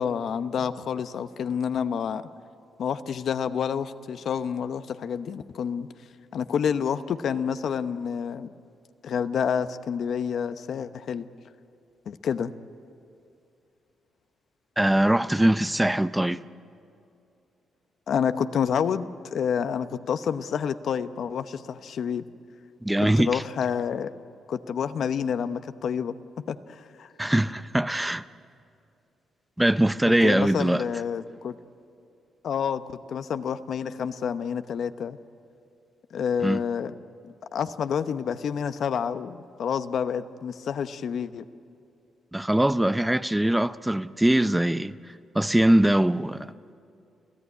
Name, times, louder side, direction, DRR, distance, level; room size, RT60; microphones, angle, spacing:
voice 1, 0.0-2.2 2.8-5.9 6.3-8.5 9.0-11.3 12.1-12.5 18.1-22.2 23.2-24.1 24.5-26.1 26.5-27.1 30.2-31.5 32.4-35.2 36.1-36.9 37.2-41.4, left 7 dB, 65° left, 0.8 m, -28 dB
voice 2, 14.8-16.4 22.8-23.4 27.2-28.2 29.6-30.8 36.4-36.6 42.3-45.0 45.3-46.5, right 1 dB, 10° right, 0.5 m, -22 dB
28.0 x 15.5 x 9.6 m
cardioid pair, 85°, 0 cm